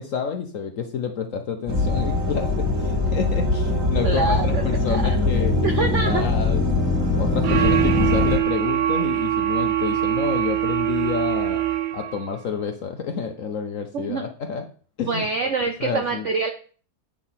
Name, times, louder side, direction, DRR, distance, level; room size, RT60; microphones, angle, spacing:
voice 1, 0.0-5.7 6.1-6.6 7.2-11.6 11.9-14.6 15.0-15.5 15.8-16.3, left 6 dB, 60° left, 5 dB, 0.9 m, -29 dB
sound 1, 1.7-8.4, left 2 dB, 15° right, 1.7 m, -22 dB
voice 2, 4.0-4.6 4.9-5.1 5.6-6.2 13.9-14.2 15.1-16.5, right 4 dB, 70° right, 5 dB, 0.7 m, -25 dB
sound 2, 7.4-12.3, right 12 dB, 85° right, 1.4 m, -23 dB
8.7 x 3.6 x 5.7 m, 0.42 s
omnidirectional pair, 2.0 m